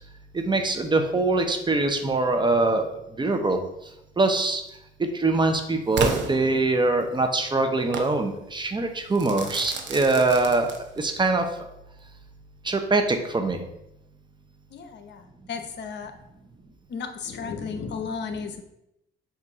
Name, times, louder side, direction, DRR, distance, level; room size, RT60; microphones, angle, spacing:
voice 1, 0.3-2.9 3.2-3.6 4.2-4.6 5.2-11.5 12.6-13.6, right 3 dB, 25° right, 5 dB, 0.8 m, -23 dB
Crackle / Fireworks, 6.0-7.1 7.9-8.2 9.2-11.2, right 5 dB, 65° right, 0.9 m, -31 dB
voice 2, 14.7-16.1 16.9-18.6, left 5 dB, 60° left, 6 dB, 0.9 m, -34 dB
7.5 x 2.7 x 4.8 m, 0.84 s
cardioid pair, 90°, 20 cm